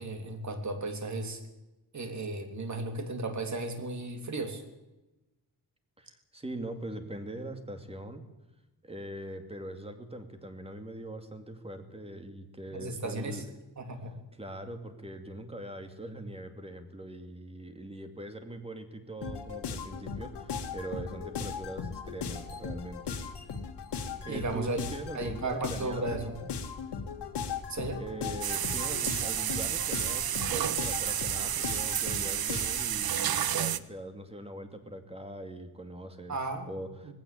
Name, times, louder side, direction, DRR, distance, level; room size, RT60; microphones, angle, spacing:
voice 1, 0.0-1.4 1.9-4.6 12.7-13.4 13.8-14.1 24.2-24.8 25.1-26.4 27.7-28.0 36.3-36.7 37.0-37.1, right 2 dB, 45° right, 6 dB, 3.3 m, -35 dB
voice 2, 6.0-8.2 8.8-13.5 14.4-23.2 24.2-26.5 28.0-36.4 36.7-37.1, right 1 dB, 15° right, 6 dB, 2.5 m, -42 dB
sound 1, 19.2-32.9, left 6 dB, 85° left, 2.2 m, -38 dB
sound 2, 28.4-33.8, right 10 dB, 65° right, 0.9 m, -31 dB
19.0 x 16.5 x 8.6 m, 1.0 s
wide cardioid pair, 135°, 40 cm